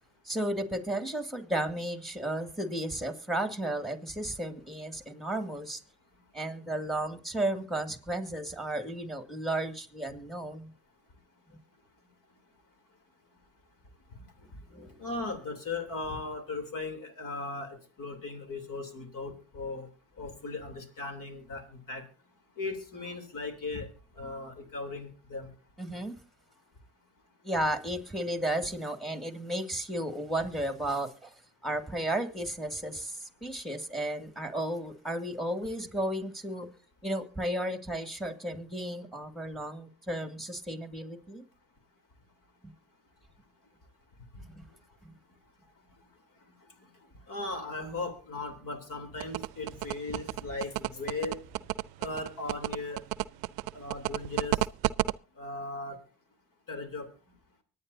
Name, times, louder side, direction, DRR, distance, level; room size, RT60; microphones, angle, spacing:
voice 1, 0.2-5.8 6.3-10.7 14.7-15.0 25.8-26.2 27.4-31.3 31.6-36.7 37.0-41.4 44.5-44.7 45.0-45.1, right 1 dB, ahead, 2.3 m, -33 dB
voice 2, 14.8-19.9 20.2-22.0 22.6-23.9 24.2-25.5 47.3-51.4 52.0-53.0 53.7-54.6 55.4-56.0 56.7-57.1, left 3 dB, 60° left, 3.3 m, -37 dB
sound 1, 49.2-55.1, right 19 dB, 80° right, 0.5 m, -30 dB
24.0 x 9.7 x 2.7 m
supercardioid pair, 60°, 36 cm